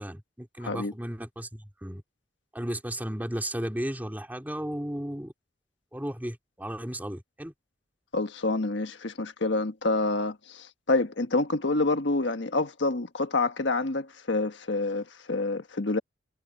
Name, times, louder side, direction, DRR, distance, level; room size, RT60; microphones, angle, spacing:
voice 1, 0.0-2.0 2.5-5.3 5.9-7.5, equal, 10° right, 3.0 m, -34 dB
voice 2, 0.6-0.9 8.1-16.0, left 2 dB, 70° left, 1.5 m, -27 dB
head